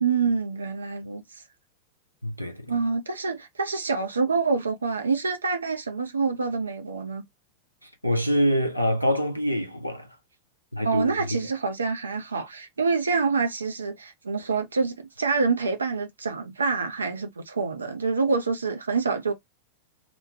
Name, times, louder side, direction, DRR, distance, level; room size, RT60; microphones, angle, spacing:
voice 1, 0.0-1.4 2.7-7.2 10.8-19.3, right 4 dB, 75° right, 0.4 m, -26 dB
voice 2, 2.2-2.7 7.8-10.1 10.7-11.4, equal, 90° left, 0.5 m, -25 dB
2.8 x 2.1 x 2.6 m
figure-of-eight pair, 90°, 0 cm